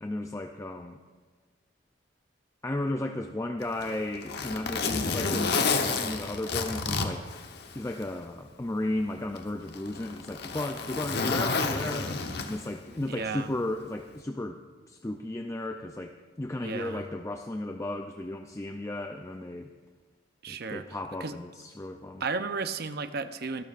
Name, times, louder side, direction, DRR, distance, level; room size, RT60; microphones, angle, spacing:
voice 1, 0.0-1.0 2.6-5.7 6.0-7.3 7.7-14.6 14.9-19.7 20.5-22.2, left 1 dB, 15° left, 5 dB, 0.4 m, -34 dB
Zipper (clothing), 3.6-8.1 8.5-8.6 9.4-12.8 14.0-14.2, left 4 dB, 60° left, 1.0 m, -30 dB
voice 2, 12.9-13.5 16.6-17.0 20.4-20.8 21.2-21.3 22.2-23.6, right 4 dB, 55° right, 10 dB, 0.7 m, -34 dB
24.0 x 12.0 x 2.5 m, 1.4 s
head